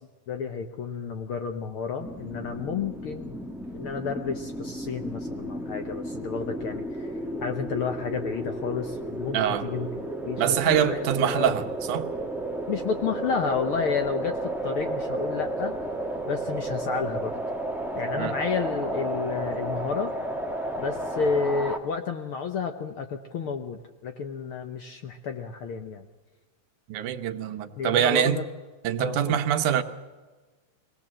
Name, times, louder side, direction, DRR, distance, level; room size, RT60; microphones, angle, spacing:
voice 1, 0.3-3.4 3.7-11.6 12.7-17.4 17.9-20.1 20.7-26.1 27.8-28.4 29.0-29.4, left 5 dB, 65° left, 6 dB, 1.4 m, -31 dB
sound 1, 2.0-21.8, right 1 dB, ahead, 0.4 m, -33 dB
voice 2, 9.3-9.7 10.4-12.1 18.2-18.3 26.9-28.4 28.8-29.8, right 10 dB, 80° right, 8 dB, 2.5 m, -24 dB
23.0 x 18.0 x 7.5 m, 1.3 s
omnidirectional pair, 3.4 m